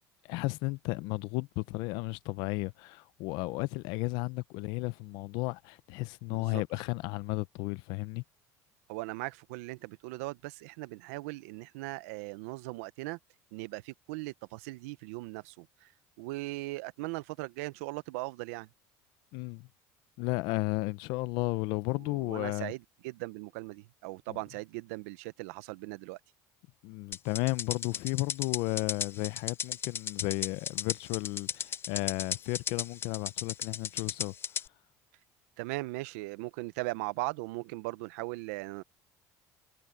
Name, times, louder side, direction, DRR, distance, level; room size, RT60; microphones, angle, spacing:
voice 1, 0.2-8.2 19.3-19.7 20.2-22.7 26.8-34.3, left 23 dB, 75° left, 0.7 m, -33 dB
voice 2, 6.3-6.6 8.9-13.2 13.5-15.9 16.2-18.7 21.9-26.2 35.6-38.8, right 22 dB, 90° right, 0.7 m, -39 dB
sound 1, 27.1-34.7, left 8 dB, 30° left, 0.4 m, -35 dB
supercardioid pair, 110°, 8 cm